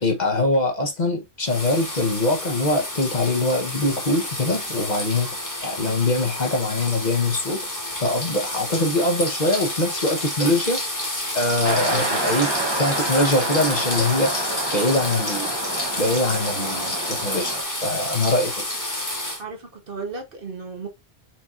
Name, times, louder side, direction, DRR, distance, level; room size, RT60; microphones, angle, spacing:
voice 1, 0.0-5.3 5.6-7.7 8.0-10.8 11.3-12.5 12.8-14.3 14.7-15.5 16.0-17.5 17.8-18.6, left 2 dB, 45° left, 1.0 m, -23 dB
sound 1, 1.4-19.4, left 1 dB, 15° left, 1.3 m, -29 dB
sound 2, 11.6-17.6, right 2 dB, 25° right, 0.9 m, -28 dB
voice 2, 19.4-20.9, right 4 dB, 55° right, 1.3 m, -34 dB
4.4 x 4.3 x 2.5 m
omnidirectional pair, 1.1 m